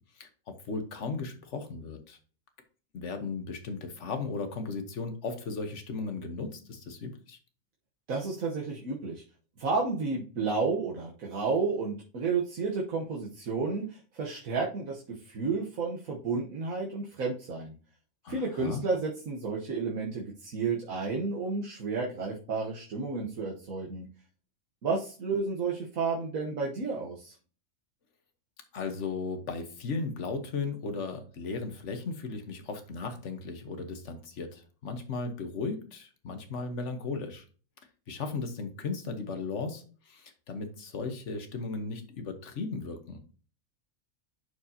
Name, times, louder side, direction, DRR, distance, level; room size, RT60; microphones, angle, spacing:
voice 1, 0.2-2.2 2.9-7.4 18.2-18.8 28.7-37.4 38.1-43.2, left 4 dB, 60° left, 7 dB, 1.5 m, -36 dB
voice 2, 8.1-9.2 9.6-17.7 18.3-24.1 24.8-27.3, right 4 dB, 80° right, -2 dB, 1.6 m, -31 dB
11.0 x 4.6 x 2.8 m, 0.40 s
omnidirectional pair, 1.4 m